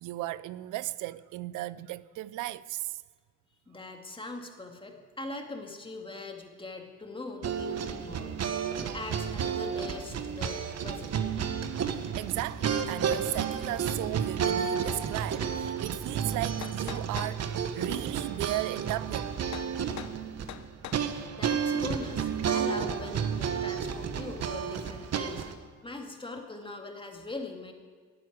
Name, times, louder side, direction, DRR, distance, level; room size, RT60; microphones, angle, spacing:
voice 1, 0.0-3.0 11.9-19.4, right 16 dB, 90° right, 0.5 m, -36 dB
voice 2, 3.7-11.2 21.3-27.7, left 2 dB, 15° left, 2.2 m, -41 dB
sound 1, 7.4-25.5, right 7 dB, 60° right, 1.2 m, -31 dB
sound 2, 16.3-17.4 19.5-19.7 20.0-20.2 20.5-21.0, left 11 dB, 65° left, 0.9 m, -42 dB
11.5 x 10.0 x 9.4 m
cardioid pair, 90°, 30 cm